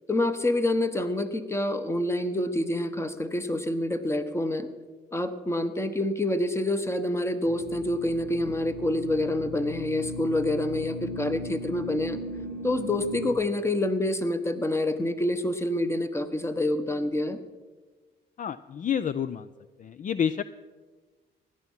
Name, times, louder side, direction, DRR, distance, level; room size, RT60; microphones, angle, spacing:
voice 1, 0.1-4.7 5.1-12.2 12.6-17.4, left 1 dB, 15° left, 10 dB, 1.2 m, -27 dB
sound 1, 7.4-13.3, left 1 dB, 65° left, 3.6 m, -38 dB
voice 2, 18.4-19.5 19.8-20.4, left 8 dB, 40° left, 14 dB, 0.5 m, -29 dB
16.5 x 11.0 x 5.6 m, 1.4 s
cardioid pair, 90°, 20 cm